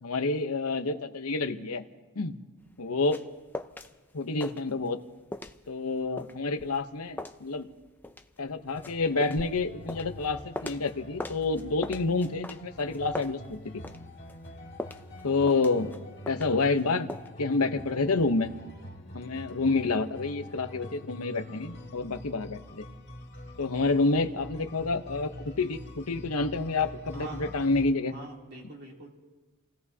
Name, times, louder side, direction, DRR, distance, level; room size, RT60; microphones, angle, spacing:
voice 1, 0.0-1.8 2.2-2.4 2.8-3.2 4.1-5.0 5.7-7.7 8.4-13.8 15.2-15.9 16.3-17.1 17.4-18.5 19.1-22.8 23.6-25.3 25.6-28.1, left 3 dB, 80° left, 9 dB, 0.9 m, -28 dB
sound 1, 2.7-3.9 4.2-5.0 5.3-10.9 11.2-14.0 14.3-16.8 17.1-17.3, left 1 dB, 10° left, 0.4 m, -40 dB
sound 2, 8.7-27.9, left 1 dB, 50° left, 2.2 m, -45 dB
voice 2, 27.1-27.5 28.1-29.1, right 2 dB, 45° right, -2 dB, 3.0 m, -43 dB
29.5 x 17.0 x 2.8 m, 1.3 s
head